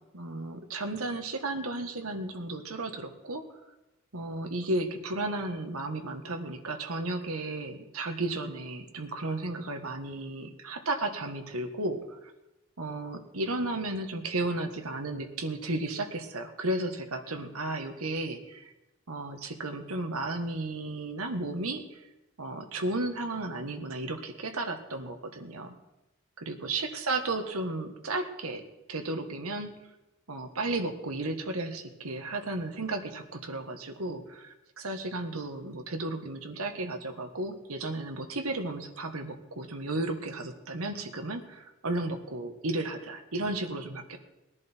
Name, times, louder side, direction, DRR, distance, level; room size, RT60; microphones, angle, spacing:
voice 1, 0.1-3.4 4.1-12.3 12.8-18.7 19.1-22.0 22.4-25.7 26.4-28.6 28.9-29.7 30.3-44.2, right 2 dB, 90° right, 6 dB, 1.5 m, -34 dB
19.5 x 10.5 x 4.5 m, 0.99 s
head